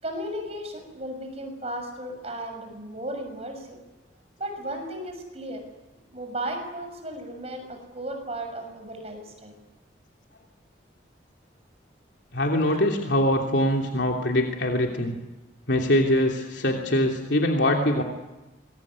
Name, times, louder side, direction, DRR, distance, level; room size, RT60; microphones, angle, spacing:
voice 1, 0.0-3.8 4.4-5.7 6.1-9.5 12.7-12.8, right 1 dB, 35° right, 5 dB, 6.5 m, -35 dB
voice 2, 12.3-15.2 15.7-18.0, left 1 dB, 75° left, 1 dB, 3.1 m, -23 dB
26.0 x 22.0 x 9.7 m, 1.1 s
head